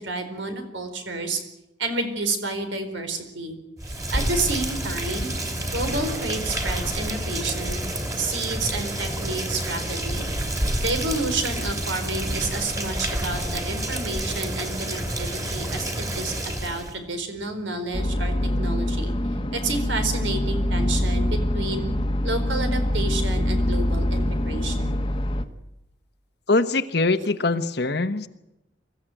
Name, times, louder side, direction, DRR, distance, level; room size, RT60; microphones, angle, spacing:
voice 1, 0.0-1.4 1.8-3.6 3.9-5.3 5.7-7.8 8.2-10.2 10.8-19.1 19.5-21.9 22.2-24.9, right 2 dB, 85° right, 7 dB, 4.4 m, -30 dB
Rain, 3.8-16.9, right 1 dB, 20° right, 3.3 m, -29 dB
sound 1, 17.9-25.4, left 1 dB, 25° left, 1.3 m, -24 dB
voice 2, 26.5-28.3, left 3 dB, 60° left, 9 dB, 1.1 m, -22 dB
24.5 x 15.0 x 9.2 m, 0.92 s
head